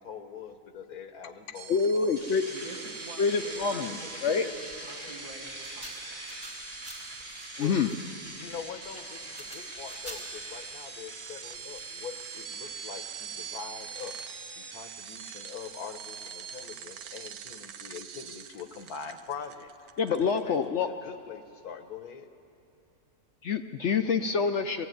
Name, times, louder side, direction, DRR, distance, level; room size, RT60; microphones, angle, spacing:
voice 1, 0.0-2.3 7.6-7.8 8.3-14.1 14.5-19.7 20.1-22.3, left 6 dB, 80° left, 8 dB, 1.6 m, -43 dB
sound 1, 1.5-20.7, right 8 dB, 90° right, 1.2 m, -44 dB
voice 2, 1.7-2.5 3.2-4.5 7.6-7.9 20.0-20.9 23.4-24.9, left 5 dB, 60° left, 7 dB, 0.8 m, -26 dB
sound 2, 2.2-18.4, equal, 25° left, 5.8 m, -45 dB
voice 3, 2.5-6.4, right 3 dB, 60° right, -1 dB, 2.7 m, -46 dB
sound 3, 3.5-13.6 14.0-14.1, equal, 20° right, 5.0 m, -48 dB
20.0 x 16.0 x 9.2 m, 2.7 s
omnidirectional pair, 1.6 m